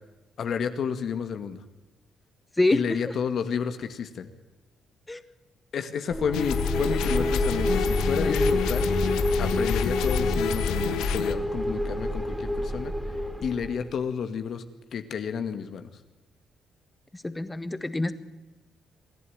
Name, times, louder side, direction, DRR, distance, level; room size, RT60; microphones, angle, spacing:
voice 1, 0.4-1.6 2.7-4.3 5.7-8.9 9.4-12.9 13.4-14.6 14.9-15.9, left 7 dB, 60° left, 8 dB, 2.0 m, -31 dB
sound 1, 6.1-13.9, equal, 5° right, 2.7 m, -28 dB
sound 2, 6.3-11.3, left 10 dB, 90° left, 1.3 m, -29 dB
voice 2, 17.2-18.1, left 2 dB, 15° left, 12 dB, 1.7 m, -25 dB
26.0 x 11.5 x 9.5 m, 1.1 s
cardioid pair, 90°, 0 cm